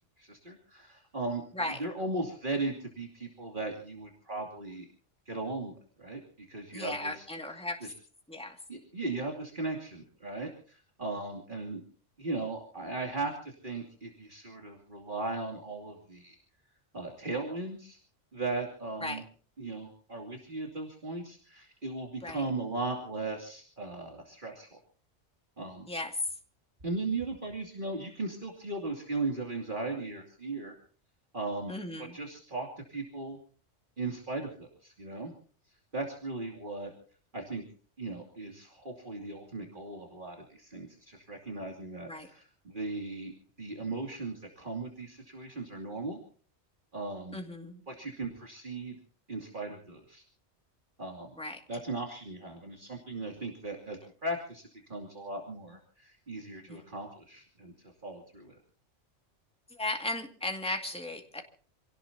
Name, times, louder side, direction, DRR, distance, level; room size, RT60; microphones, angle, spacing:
voice 1, 0.2-1.4 1.8-4.9 5.3-7.3 7.8-7.9 8.7-11.8 12.2-16.4 16.9-18.0 18.3-19.2 19.6-24.7 25.6-25.9 26.8-30.7 31.3-31.7 32.0-33.4 34.0-35.3 35.9-36.9 37.3-37.6 38.0-43.3 43.6-46.2 46.9-47.4 47.9-49.0 49.3-50.2 51.0-51.3 51.7-58.6, right 3 dB, 45° right, 1 dB, 2.9 m, -37 dB
voice 2, 6.7-7.9 8.3-8.6 19.0-19.2 22.2-22.4 25.9-26.1 31.7-32.2 42.1-42.3 47.3-47.8 51.4-51.6 56.7-56.8 59.7-61.4, left 2 dB, 5° left, 3 dB, 2.2 m, -36 dB
27.5 x 18.0 x 2.8 m, 0.42 s
omnidirectional pair, 1.2 m